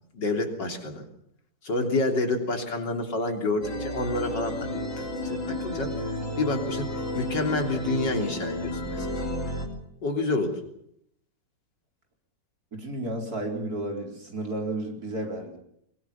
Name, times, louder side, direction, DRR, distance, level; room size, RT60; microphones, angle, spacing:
voice 1, 0.1-1.1 1.6-4.7 5.0-6.0 6.4-9.3 10.0-10.6, left 2 dB, 80° left, 4 dB, 3.9 m, -28 dB
sound 1, 3.6-9.7, left 1 dB, 45° left, 3.8 m, -32 dB
voice 2, 12.7-15.6, right 1 dB, 55° right, 3 dB, 4.9 m, -32 dB
23.0 x 23.0 x 7.2 m, 0.73 s
omnidirectional pair, 1.9 m